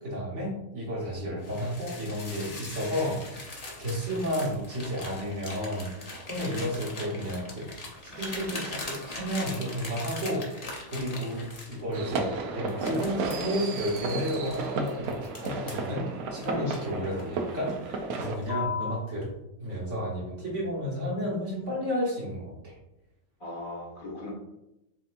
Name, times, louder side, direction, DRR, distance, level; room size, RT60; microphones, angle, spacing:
voice 1, 0.0-7.7 8.0-12.3 12.5-19.3 19.6-22.7, equal, 55° right, -4 dB, 1.6 m, -32 dB
sound 1, 1.4-12.2 12.7-15.9 16.4-17.3 17.7-18.0 18.4-19.0, left 3 dB, 30° left, 0.8 m, -40 dB
sound 2, 11.9-18.4, right 4 dB, 80° right, 1.1 m, -33 dB
voice 2, 16.5-16.8 23.4-24.3, left 1 dB, 70° left, -4 dB, 2.2 m, -37 dB
7.5 x 2.7 x 2.5 m, 0.91 s
omnidirectional pair, 1.5 m